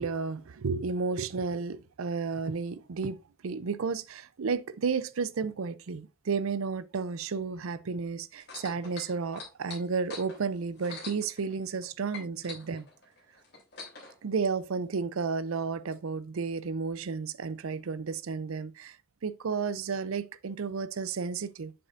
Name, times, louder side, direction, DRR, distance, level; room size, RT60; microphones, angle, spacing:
voice 1, 0.0-12.9 14.2-19.0 19.2-21.7, right 5 dB, 85° right, 0.5 m, -32 dB
sound 1, 8.4-11.8 12.1-14.1 14.9-15.0, left 4 dB, 50° left, 2.9 m, -44 dB
7.7 x 6.5 x 2.6 m
head